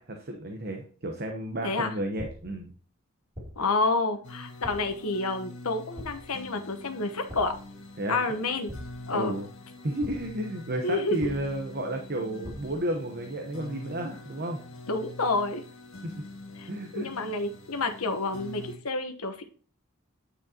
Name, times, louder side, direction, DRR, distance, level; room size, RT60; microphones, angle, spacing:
voice 1, 0.0-2.7 8.0-8.2 9.1-9.5 9.8-14.6 16.0-16.1 16.7-17.1, right 1 dB, 45° right, 3 dB, 1.0 m, -32 dB
voice 2, 1.6-1.9 3.6-7.5 8.1-8.7 9.1-9.3 10.8-11.2 14.9-15.6 16.6-19.4, left 3 dB, 85° left, 7 dB, 1.1 m, -29 dB
sound 1, 2.2-2.6 3.3-3.8 4.6-5.0 6.0-6.4 7.3-7.7 8.7-9.2 10.0-10.4 11.2-11.7 12.4-12.9, equal, 25° right, 3.0 m, -43 dB
sound 2, 4.2-18.8, left 2 dB, 60° left, 1.7 m, -45 dB
9.5 x 6.2 x 2.9 m, 0.41 s
head